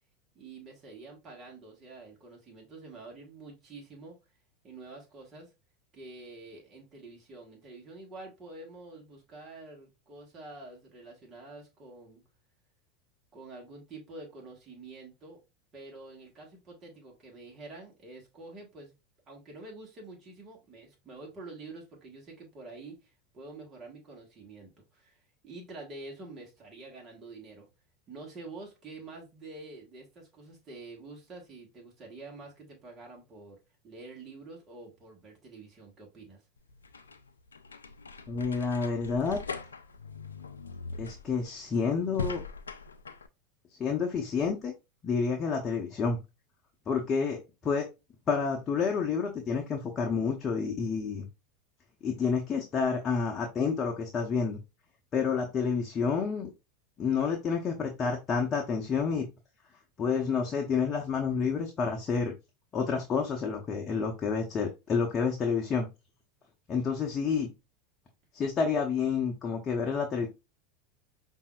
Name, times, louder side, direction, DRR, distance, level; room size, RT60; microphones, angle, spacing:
voice 1, 0.3-4.2 4.6-5.5 5.9-12.2 13.3-15.4 15.7-18.9 19.3-27.7 28.1-33.6 33.8-36.4, right 3 dB, 30° right, -1 dB, 1.5 m, -47 dB
sound 1, 36.6-43.3, left 4 dB, 90° left, 0.4 m, -41 dB
voice 2, 38.3-39.4 41.0-42.4 43.8-44.7 45.0-46.2 46.9-47.9 48.3-51.3 52.0-54.6 55.1-56.5 57.0-59.3 60.0-62.3 62.7-65.9 66.7-67.5 68.3-70.3, left 5 dB, 30° left, 1 dB, 0.9 m, -29 dB
5.4 x 2.7 x 2.3 m, 0.25 s
hypercardioid pair, 90°, 0 cm